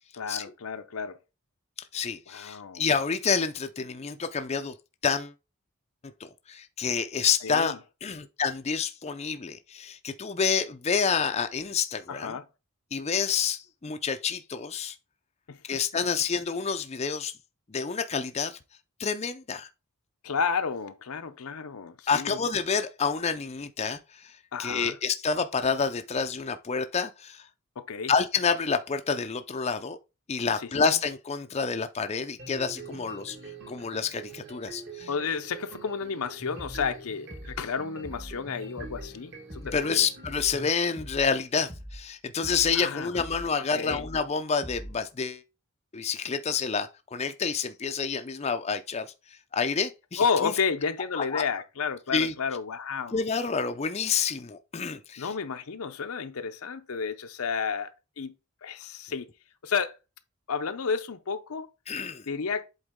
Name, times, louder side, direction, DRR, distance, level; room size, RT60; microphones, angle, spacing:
voice 1, 0.1-1.2 2.3-2.8 7.4-7.8 12.1-12.4 15.5-15.8 20.2-22.4 24.5-25.0 27.8-28.1 30.6-30.7 35.1-40.1 42.7-43.2 43.7-44.1 50.2-53.2 55.2-58.3 58.6-59.3 59.6-60.0 60.5-61.7 62.3-62.7, left 5 dB, 75° left, 0.6 m, -31 dB
voice 2, 1.9-4.7 5.0-5.3 6.5-12.4 12.9-15.0 15.7-17.3 17.7-18.6 19.0-19.7 22.1-24.3 24.6-27.5 28.1-30.0 30.3-33.4 33.7-35.1 39.7-45.4 45.9-49.1 49.5-50.5 51.2-51.4 52.1-52.3 53.1-55.3 61.9-62.2, left 5 dB, 30° left, 0.4 m, -28 dB
sound 1, 32.4-40.7, right 2 dB, 50° right, 2.1 m, -45 dB
sound 2, 36.6-37.0 37.3-37.7 38.0-38.4 38.8-39.1 39.5-39.9 40.2-40.6 41.0-41.3 41.7-42.1 42.4-42.8 43.2-43.5 43.9-44.3 44.6-45.0, equal, 25° right, 1.1 m, -42 dB
8.0 x 3.9 x 3.6 m
head